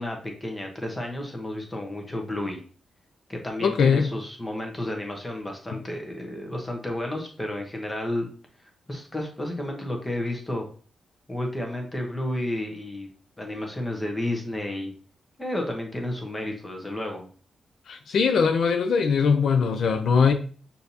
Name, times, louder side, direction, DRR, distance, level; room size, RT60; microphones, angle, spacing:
voice 1, 0.0-2.6 3.3-8.3 8.9-10.7 11.3-13.1 13.4-14.9 15.4-17.3, left 1 dB, 10° left, 0.9 m, -31 dB
voice 2, 3.6-4.1 5.7-5.8 17.9-20.3, left 6 dB, 65° left, 0.4 m, -21 dB
6.3 x 2.7 x 2.7 m
wide cardioid pair, 155°, 0 cm